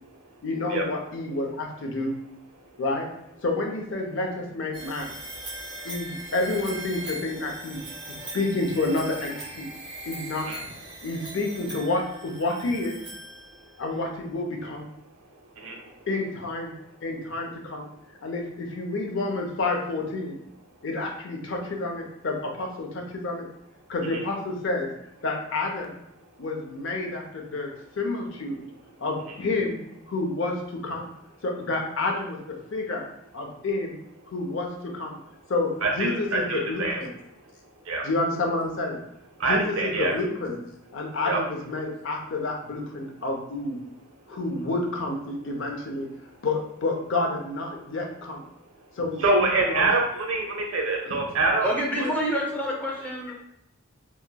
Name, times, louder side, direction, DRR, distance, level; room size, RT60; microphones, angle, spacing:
voice 1, 0.4-2.1 2.8-3.1 3.4-5.1 5.8-7.8 8.1-9.7 10.1-10.5 11.0-13.0 13.8-14.9 16.1-16.7 17.0-17.9 18.2-20.4 20.8-23.5 23.9-24.9 25.2-25.9 26.4-27.7 27.9-28.6 29.0-29.8 30.1-31.1 31.4-33.0 33.3-34.0 34.3-35.2 35.5-37.1 38.0-39.0 39.5-40.6 40.9-43.8 44.3-46.1 46.4-48.4 49.0-49.9 51.0-51.2, left 2 dB, 60° left, 1 dB, 0.5 m, -29 dB
sound 1, 4.7-13.8, right 1 dB, 20° right, 0.8 m, -40 dB
voice 2, 35.8-37.0 37.9-38.0 39.4-40.1 41.3-41.4 49.2-51.7 52.0-52.1, right 2 dB, 80° right, 1 dB, 0.7 m, -25 dB
voice 3, 51.6-53.3, equal, 10° left, -3 dB, 0.5 m, -27 dB
2.8 x 2.5 x 2.2 m, 0.79 s
head